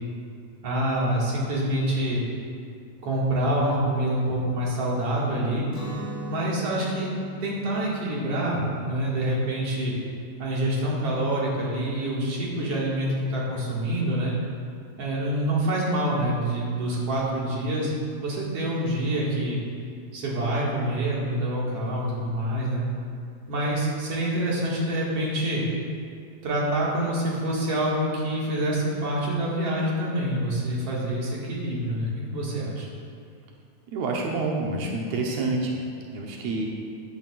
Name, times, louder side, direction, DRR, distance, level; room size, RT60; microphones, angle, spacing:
voice 1, 0.6-2.2 3.0-5.6 6.3-7.1 7.4-9.9 10.4-14.3 15.0-17.9 18.2-19.6 20.1-22.8 23.5-25.6 26.4-32.9, right 1 dB, 45° right, -5 dB, 2.5 m, -26 dB
Guitar, 5.7-11.5, right 1 dB, 15° left, 1.2 m, -41 dB
voice 2, 33.9-35.8 36.1-36.7, right 3 dB, 85° right, -1 dB, 1.5 m, -28 dB
15.0 x 10.0 x 2.5 m, 2.3 s
omnidirectional pair, 4.5 m